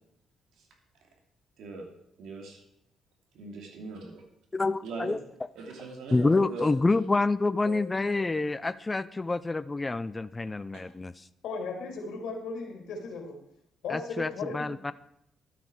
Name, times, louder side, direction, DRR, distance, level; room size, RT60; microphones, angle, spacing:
voice 1, 2.2-2.6 3.3-4.2 4.8-5.2 5.6-6.7 7.6-7.8 8.2-8.3 10.7-10.8, right 3 dB, 80° right, 2 dB, 2.7 m, -39 dB
voice 2, 4.5-5.2 6.1-11.2 13.9-14.9, left 3 dB, 20° left, 15 dB, 0.4 m, -27 dB
voice 3, 11.4-13.4 13.8-14.7, left 4 dB, 75° left, 1 dB, 2.6 m, -36 dB
12.0 x 9.4 x 4.7 m, 0.79 s
cardioid pair, 90°, 0 cm